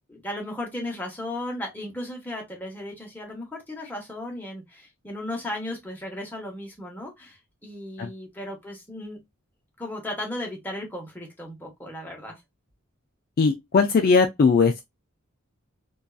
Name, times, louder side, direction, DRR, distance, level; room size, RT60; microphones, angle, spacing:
voice 1, 0.1-9.2 9.8-12.4, left 1 dB, 10° left, 0.9 m, -35 dB
voice 2, 13.4-14.8, left 4 dB, 45° left, 0.3 m, -19 dB
2.6 x 2.3 x 2.3 m
head